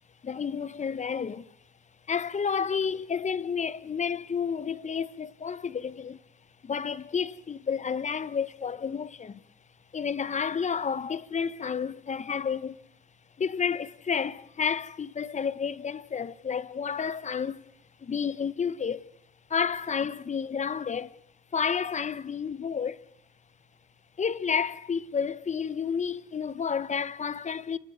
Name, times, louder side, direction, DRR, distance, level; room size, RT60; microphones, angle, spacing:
voice 1, 0.2-1.5 2.1-6.2 6.6-9.4 9.9-12.8 13.4-17.6 18.0-19.1 19.5-21.2 21.5-23.0 24.2-27.8, left 6 dB, 35° left, 1.0 m, -30 dB
29.5 x 13.5 x 9.4 m
cardioid pair, 90°, 20 cm